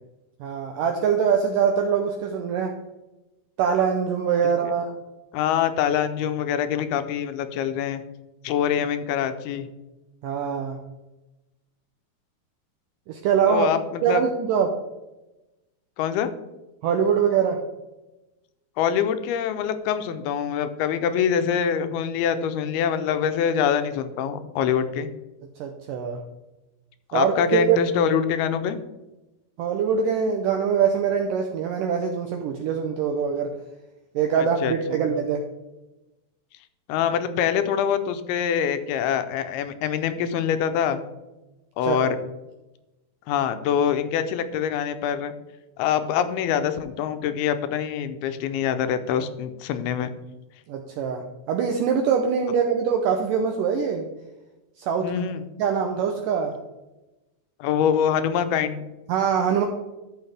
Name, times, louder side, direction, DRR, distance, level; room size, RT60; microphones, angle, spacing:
voice 1, 0.4-2.7 3.6-4.9 10.2-10.8 13.1-13.7 14.0-14.7 16.8-17.6 25.6-26.2 27.1-27.8 29.6-33.5 34.2-35.4 41.9-42.0 50.7-54.1 54.8-55.1 55.6-56.6 59.1-59.7, right 7 dB, 85° right, 4 dB, 1.9 m, -23 dB
voice 2, 5.3-8.0 8.4-9.7 13.5-14.2 16.0-16.3 18.8-25.1 27.1-28.8 34.4-35.0 36.9-41.0 41.8-42.2 43.3-45.3 45.8-50.1 55.0-55.4 57.6-58.8, left 8 dB, 80° left, 9 dB, 2.5 m, -24 dB
12.5 x 6.4 x 3.4 m, 1.0 s
omnidirectional pair, 4.6 m